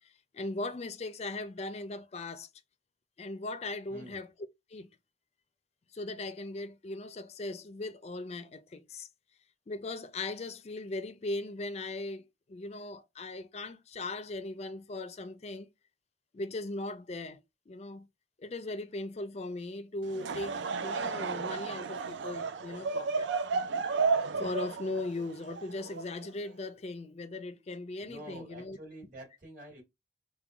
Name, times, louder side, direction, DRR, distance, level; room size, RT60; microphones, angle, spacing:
voice 1, 0.0-2.5 3.2-4.3 4.7-4.9 5.9-9.1 9.7-15.7 16.3-17.4 17.7-18.1 18.4-23.3 24.4-28.8, left 2 dB, 35° left, 0.4 m, -39 dB
Laughter / Crowd, 20.0-26.5, right 4 dB, 85° right, 0.4 m, -33 dB
voice 2, 28.0-29.8, right 1 dB, 50° right, 1.9 m, -47 dB
3.7 x 2.2 x 4.5 m
head